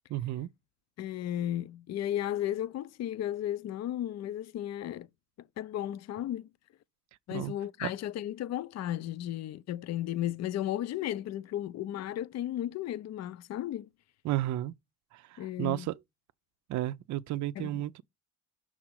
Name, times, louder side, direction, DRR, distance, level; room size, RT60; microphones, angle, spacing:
voice 1, 0.1-0.5 7.3-7.5 7.8-7.9 14.2-14.7 15.1-16.0 16.7-18.0, right 14 dB, 70° right, 0.5 m, -33 dB
voice 2, 1.0-5.1 5.6-6.5 7.3-13.9 15.4-15.9 17.6-17.8, left 12 dB, 60° left, 0.5 m, -34 dB
6.1 x 3.8 x 6.1 m
cardioid pair, 90°, 30 cm